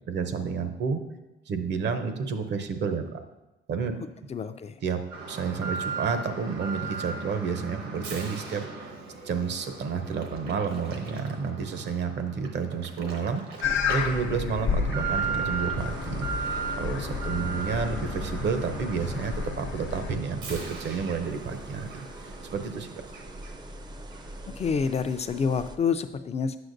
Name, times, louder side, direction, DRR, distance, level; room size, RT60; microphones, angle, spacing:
voice 1, 0.1-1.0 1.5-3.2 3.7-3.9 4.8-8.9 9.2-23.1, right 5 dB, 60° right, 8 dB, 0.6 m, -30 dB
voice 2, 4.3-4.8 24.5-26.6, left 6 dB, 35° left, 11 dB, 0.4 m, -28 dB
Alarm, 5.1-23.8 24.1-24.2 24.8-24.9, right 5 dB, 85° right, 1.1 m, -37 dB
sound 1, 13.6-20.2, left 5 dB, 75° left, 0.7 m, -31 dB
sound 2, 15.8-25.8, right 1 dB, 20° right, 0.4 m, -44 dB
7.8 x 5.8 x 2.6 m, 1.0 s
cardioid pair, 90°, 20 cm